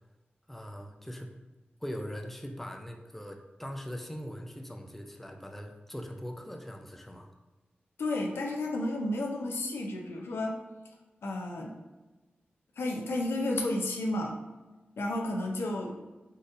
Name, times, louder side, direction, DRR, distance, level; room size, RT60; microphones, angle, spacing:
voice 1, 0.5-1.3 1.8-7.3, equal, 5° left, 3 dB, 0.3 m, -41 dB
voice 2, 8.0-10.6 11.2-11.7 12.8-14.4 15.0-16.0, left 1 dB, 85° left, 1 dB, 0.4 m, -32 dB
3.9 x 2.5 x 2.5 m, 1.2 s
wide cardioid pair, 85°, 4 cm